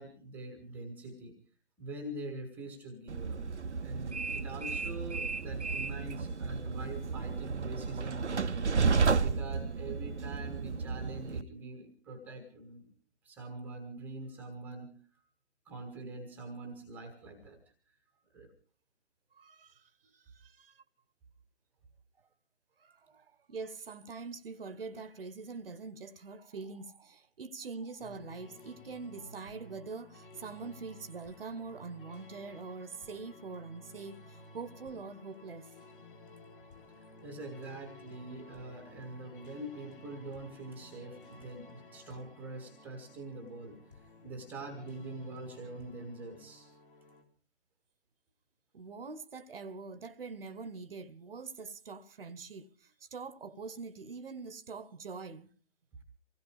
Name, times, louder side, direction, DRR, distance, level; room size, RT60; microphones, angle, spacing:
voice 1, 0.0-1.3 1.8-3.4 3.8-12.9 13.2-15.0 15.6-17.6 18.3-18.5 37.2-46.7, right 2 dB, 5° right, 1.1 m, -44 dB
Train, 3.1-11.4, right 4 dB, 65° right, 0.8 m, -32 dB
voice 2, 19.3-20.8 22.8-35.7 48.7-55.5, right 4 dB, 50° right, 1.1 m, -44 dB
sound 1, 28.0-47.2, left 2 dB, 45° left, 3.4 m, -54 dB
24.5 x 17.0 x 3.4 m
figure-of-eight pair, 140°, 37 cm